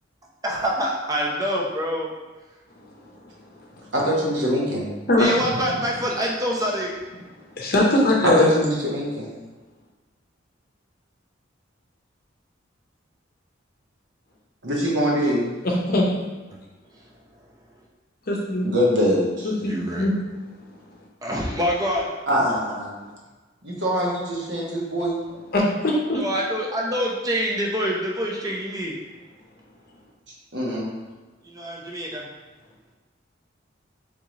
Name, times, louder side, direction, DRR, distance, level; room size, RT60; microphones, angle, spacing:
voice 1, 0.4-2.1 5.2-6.9 19.6-20.1 21.2-22.1 26.1-28.9 31.4-32.3, equal, 20° right, -2 dB, 0.6 m, -26 dB
voice 2, 3.9-4.8 8.2-9.3 14.6-15.5 18.6-19.5 22.3-22.9 23.6-25.2 30.5-30.9, equal, 60° right, -4 dB, 1.1 m, -23 dB
voice 3, 7.6-8.5 15.6-16.0 18.3-18.7 19.6-20.1 25.5-26.2, left 1 dB, 50° left, -2 dB, 0.7 m, -21 dB
3.7 x 3.6 x 3.1 m, 1.2 s
head